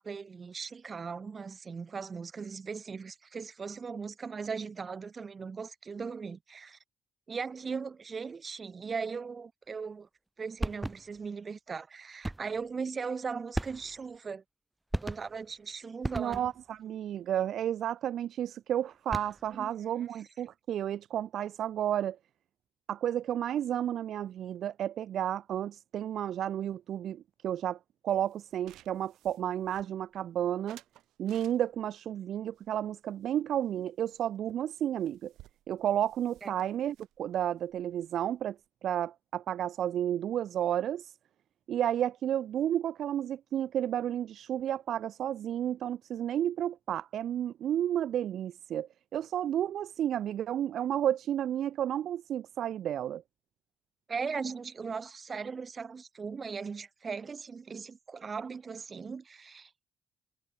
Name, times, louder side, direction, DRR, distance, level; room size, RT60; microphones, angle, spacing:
voice 1, 0.0-6.8 7.3-10.1 10.4-14.4 15.0-16.4 19.5-19.9 36.4-36.5 54.1-59.9, right 5 dB, 40° right, 4.6 m, -38 dB
sound 1, 10.6-11.3 12.2-12.6 13.5-14.2 14.9-15.5 16.0-16.7 18.9-19.6, right 1 dB, 10° right, 4.9 m, -36 dB
voice 2, 16.2-22.2 22.9-27.8 28.0-30.8 31.2-35.3 35.7-38.6 38.8-41.1 41.7-53.2, right 10 dB, 70° right, 0.7 m, -32 dB
sound 2, 28.1-30.2 30.7-32.0 32.5-33.8 34.1-34.2 34.5-34.6 34.8-38.7, right 15 dB, 90° right, 6.2 m, -59 dB
cardioid pair, 90°, 0 cm